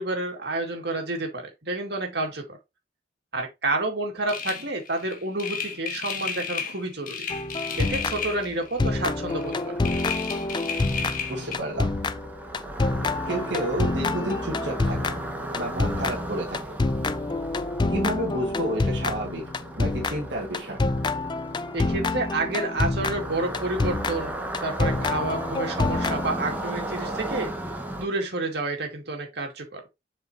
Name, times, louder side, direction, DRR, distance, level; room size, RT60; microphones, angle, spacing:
voice 1, 0.0-2.6 3.3-7.2 7.8-9.7 21.7-27.5 28.0-29.8, right 2 dB, 65° right, 2.2 m, -29 dB
sound 1, 4.3-9.0 9.3-11.6, left 6 dB, 50° left, 1.3 m, -33 dB
sound 2, 7.3-8.5 8.8-26.6, left 3 dB, 25° left, 0.4 m, -28 dB
sound 3, 8.9-28.0, right 1 dB, 10° right, 1.3 m, -36 dB
voice 2, 11.3-11.9 13.2-15.1 15.6-16.6 17.9-19.5 19.8-20.8, right 1 dB, 80° right, 1.6 m, -30 dB
7.5 x 5.0 x 2.8 m
head